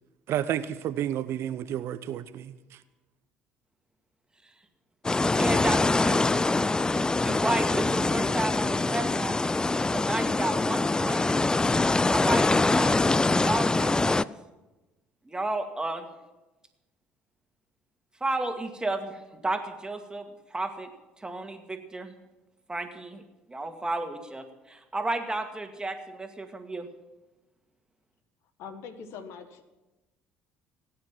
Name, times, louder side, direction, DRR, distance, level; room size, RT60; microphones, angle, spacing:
voice 1, 0.3-2.5, right 11 dB, 55° right, 0.7 m, -30 dB
sound 1, 5.0-14.2, left 3 dB, 15° left, 0.4 m, -24 dB
voice 2, 5.2-6.4 6.9-9.4 9.9-11.4 12.1-13.1 13.4-14.2 15.3-16.1 18.2-20.3 20.5-20.9 21.2-22.1 22.7-23.2 23.5-26.9, right 2 dB, 15° right, 2.1 m, -32 dB
voice 3, 28.6-29.7, left 6 dB, 65° left, 1.5 m, -42 dB
17.0 x 9.8 x 7.5 m
hypercardioid pair, 55°, 5 cm